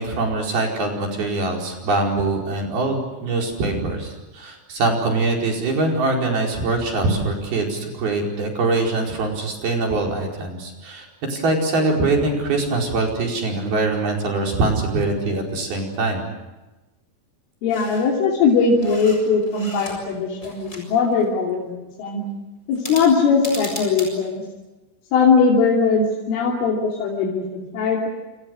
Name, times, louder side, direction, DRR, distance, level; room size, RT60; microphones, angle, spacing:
voice 1, 0.0-16.2, right 2 dB, 55° right, 0 dB, 6.5 m, -23 dB
voice 2, 17.6-22.2 22.7-24.4 25.1-28.1, left 5 dB, 90° left, -2 dB, 5.6 m, -20 dB
sound 1, 17.7-18.1 18.5-20.1 20.4-21.3 22.7-24.1, left 1 dB, 15° left, 7.2 m, -37 dB
29.5 x 28.0 x 6.4 m, 1.1 s
omnidirectional pair, 5.5 m